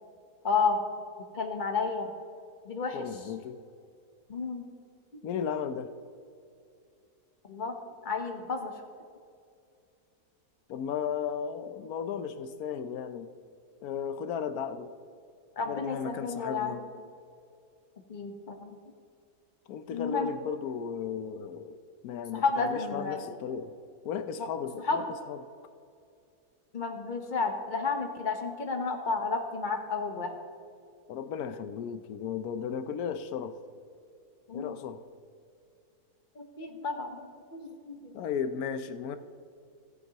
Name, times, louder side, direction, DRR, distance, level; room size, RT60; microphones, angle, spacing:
voice 1, 0.4-0.8 1.3-2.1 2.6-3.1 4.3-4.7 5.1-5.2 7.5-7.8 8.0-8.7 15.6-16.8 18.1-18.8 19.9-20.3 22.3-23.2 24.4-24.5 24.8-25.1 26.7-30.3 34.5-34.7 36.3-38.2, left 4 dB, 35° left, 4 dB, 1.0 m, -31 dB
voice 2, 2.9-3.6 5.2-5.9 10.7-13.3 13.8-15.0 15.6-16.9 19.7-21.8 22.0-23.7 24.0-25.4 31.1-33.6 34.5-35.0 38.1-39.2, left 7 dB, 70° left, 10 dB, 1.1 m, -35 dB
17.5 x 8.1 x 2.9 m, 2.5 s
omnidirectional pair, 1.7 m